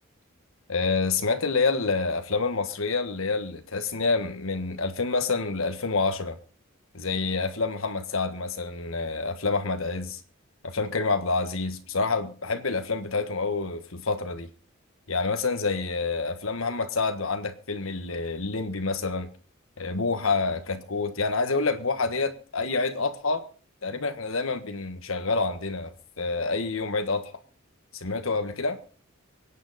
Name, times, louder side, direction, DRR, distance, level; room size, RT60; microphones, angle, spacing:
voice 1, 0.7-6.4 6.9-10.2 10.6-14.5 15.1-19.3 19.8-23.4 23.8-27.3 27.9-28.8, left 4 dB, 75° left, 1.5 m, -28 dB
24.5 x 9.3 x 4.2 m
head